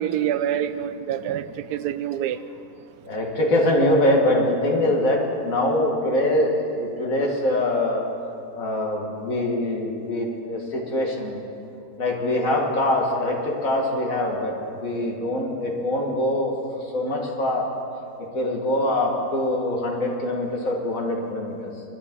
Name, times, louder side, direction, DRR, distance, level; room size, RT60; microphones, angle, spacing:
voice 1, 0.0-2.4, right 10 dB, 90° right, 13 dB, 1.2 m, -26 dB
voice 2, 3.0-8.0 8.5-11.4 12.0-14.5 14.8-16.5 16.9-17.7 18.3-21.7, left 1 dB, 60° left, 0 dB, 2.0 m, -23 dB
22.5 x 11.5 x 3.7 m, 2.7 s
omnidirectional pair, 1.7 m